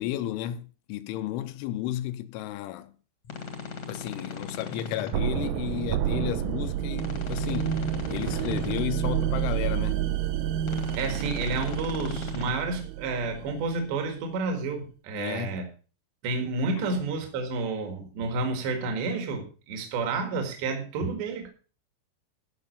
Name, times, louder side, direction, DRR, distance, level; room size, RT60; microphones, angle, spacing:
voice 1, 0.0-2.9 3.9-7.8 8.1-10.1 15.1-15.6 16.8-16.9, left 13 dB, 80° left, 3.1 m, -33 dB
sound 1, 3.2-5.1 6.9-8.8 10.6-12.5, left 5 dB, 55° left, 1.7 m, -38 dB
sound 2, 5.1-14.0, right 11 dB, 80° right, 3.2 m, -29 dB
voice 2, 11.0-15.7 16.2-21.5, right 3 dB, 65° right, 3.8 m, -30 dB
15.0 x 6.0 x 5.3 m
omnidirectional pair, 5.7 m